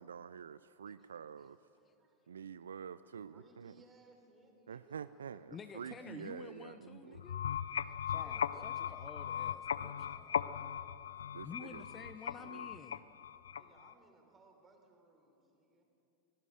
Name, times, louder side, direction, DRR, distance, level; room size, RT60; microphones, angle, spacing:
voice 1, 0.0-1.6 2.3-3.8 4.7-7.2 11.3-11.8 12.4-12.7, right 7 dB, 70° right, 16 dB, 0.4 m, -47 dB
voice 2, 3.3-6.5 7.9-8.7 13.5-15.8, right 2 dB, 20° right, 3 dB, 3.8 m, -64 dB
voice 3, 5.5-7.8 8.1-10.4 11.4-13.0, left 6 dB, 20° left, 9 dB, 0.8 m, -51 dB
sound 1, 7.1-13.9, left 8 dB, 65° left, 0.5 m, -38 dB
25.0 x 17.5 x 6.6 m, 2.8 s
figure-of-eight pair, 90°, 0 cm